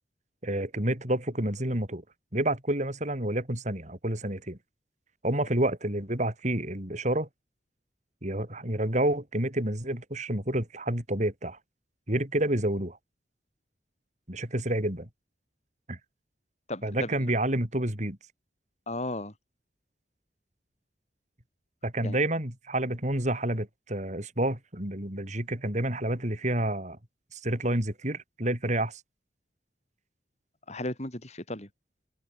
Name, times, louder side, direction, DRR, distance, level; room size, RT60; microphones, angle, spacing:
voice 1, 0.4-2.0 2.3-4.6 5.2-7.3 8.2-11.6 12.1-13.0 14.3-15.1 15.9-16.0 16.8-18.2 21.8-27.0 27.3-29.0, right 1 dB, 45° right, 5.0 m, -29 dB
voice 2, 16.7-17.2 18.9-19.3 22.0-22.2 30.7-31.7, left 1 dB, 40° left, 5.9 m, -35 dB
open air
head